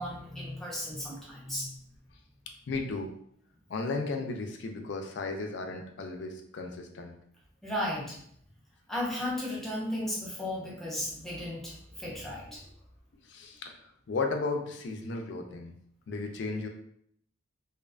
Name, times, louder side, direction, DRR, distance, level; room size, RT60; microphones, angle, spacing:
voice 1, 0.0-1.8 7.6-8.2 8.9-12.7, left 1 dB, ahead, -5 dB, 0.5 m, -35 dB
voice 2, 2.7-3.1 3.7-7.1 13.3-13.7 14.1-15.7 16.1-16.7, left 3 dB, 60° left, 3 dB, 0.4 m, -34 dB
2.4 x 2.2 x 2.3 m, 0.67 s
head